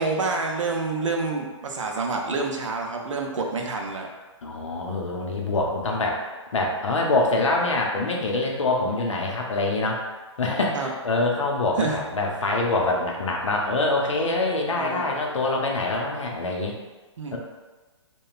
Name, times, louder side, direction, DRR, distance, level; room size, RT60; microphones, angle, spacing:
voice 1, 0.0-4.1 10.7-10.9 11.8-12.0 14.8-15.0 17.2-17.4, right 3 dB, 85° right, 1 dB, 0.5 m, -27 dB
voice 2, 4.4-6.2 6.5-10.0 10.4-16.8 17.3-17.4, left 2 dB, 85° left, 0 dB, 0.6 m, -25 dB
2.8 x 2.2 x 2.4 m, 1.2 s
hypercardioid pair, 135°, 16 cm